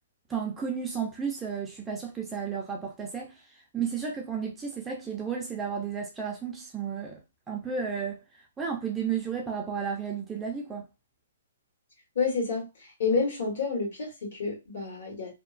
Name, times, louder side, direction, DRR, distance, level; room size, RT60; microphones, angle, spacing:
voice 1, 0.3-7.2 7.5-8.2 8.6-10.9, right 6 dB, 10° right, 0.5 m, -33 dB
voice 2, 12.2-12.7 13.0-15.4, left 4 dB, 60° left, 1.7 m, -29 dB
2.9 x 2.1 x 2.4 m
hypercardioid pair, 160°, 0 cm